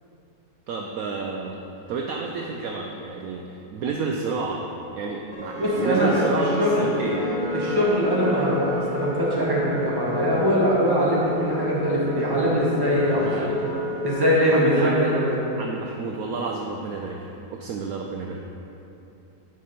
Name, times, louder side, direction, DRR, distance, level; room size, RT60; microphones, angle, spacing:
voice 1, 0.7-1.6 1.9-4.6 4.9-7.2 13.1-13.5 14.5-15.1 15.6-18.4, right 4 dB, 75° right, 1 dB, 0.8 m, -30 dB
sound 1, 5.3-15.5, equal, 85° left, 0.4 m, -30 dB
voice 2, 5.6-6.2 6.6-6.9 7.5-13.5 14.0-15.4, equal, 15° right, -6 dB, 1.3 m, -22 dB
10.0 x 5.0 x 4.3 m, 2.8 s
omnidirectional pair, 2.0 m